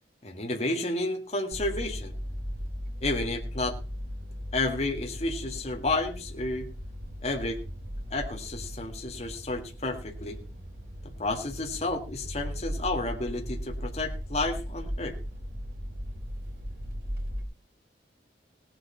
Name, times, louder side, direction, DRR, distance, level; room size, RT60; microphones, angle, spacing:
voice 1, 0.2-2.1 3.0-3.8 4.5-6.7 7.2-7.6 8.1-10.4 11.2-15.2, left 2 dB, 35° left, 2 dB, 1.8 m, -31 dB
sound 1, 1.5-17.4, equal, 60° right, 4.3 m, -37 dB
18.0 x 7.8 x 5.5 m, 0.34 s
head